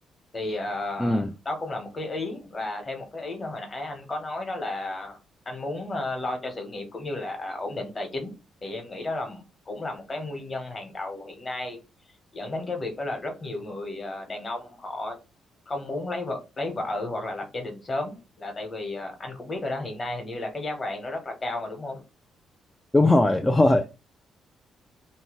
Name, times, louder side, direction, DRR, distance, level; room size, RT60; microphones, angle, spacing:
voice 1, 0.3-5.2 5.4-8.3 8.6-11.8 12.3-15.2 15.7-22.0, left 2 dB, 35° left, 1.0 m, -33 dB
voice 2, 22.9-23.9, left 2 dB, 15° left, 0.4 m, -19 dB
2.7 x 2.2 x 3.0 m
cardioid pair, 90°, 0 cm